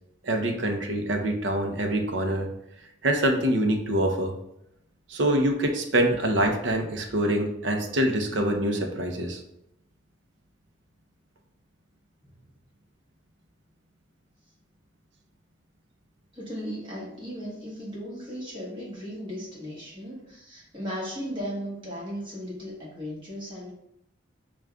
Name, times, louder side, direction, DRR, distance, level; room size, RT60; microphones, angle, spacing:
voice 1, 0.2-2.5 3.0-4.3 5.1-9.4, right 1 dB, 80° right, 4 dB, 0.6 m, -25 dB
voice 2, 16.3-23.7, equal, 25° right, -6 dB, 1.2 m, -36 dB
6.3 x 2.3 x 2.3 m, 0.81 s
head